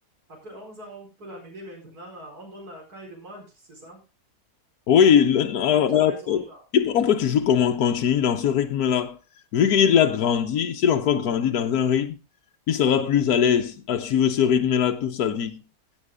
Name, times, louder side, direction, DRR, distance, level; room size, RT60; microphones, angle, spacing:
voice 1, 0.3-4.0 5.7-6.6, right 1 dB, 90° right, 5.1 m, -43 dB
voice 2, 4.9-6.4 6.7-9.2 9.5-12.2 12.7-15.6, left 8 dB, 90° left, 1.4 m, -21 dB
16.5 x 7.6 x 3.6 m
omnidirectional pair, 1.6 m